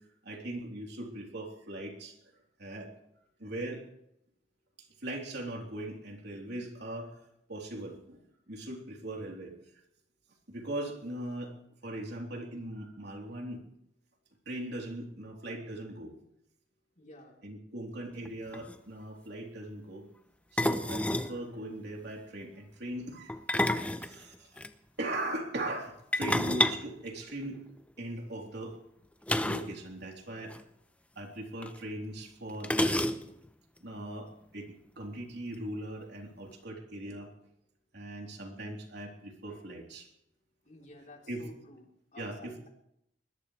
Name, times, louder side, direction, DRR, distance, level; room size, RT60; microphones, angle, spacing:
voice 1, 0.2-2.2 2.6-2.9 3.4-3.8 5.0-7.1 7.5-8.2 8.5-9.6 10.5-11.6 11.8-13.6 14.5-16.1 17.4-20.1 20.5-23.4 23.9-24.5 25.0-27.6 28.0-28.8 29.4-30.6 31.2-33.1 33.8-34.7 35.0-37.3 37.9-40.1 41.3-41.4 42.2-42.6, right 1 dB, 60° right, 0 dB, 3.5 m, -39 dB
voice 2, 17.0-17.4 24.4-24.5 40.7-41.8 42.1-42.7, left 2 dB, 40° left, 0 dB, 3.6 m, -52 dB
sound 1, 18.2-18.3 18.5-18.8 20.6-21.4 23.3-24.7 26.1-27.8 29.3-29.8 30.0-30.1 30.4-30.6 31.6-31.7 32.6-33.5, left 1 dB, 5° left, 0.7 m, -30 dB
21.5 x 20.5 x 3.3 m, 0.78 s
head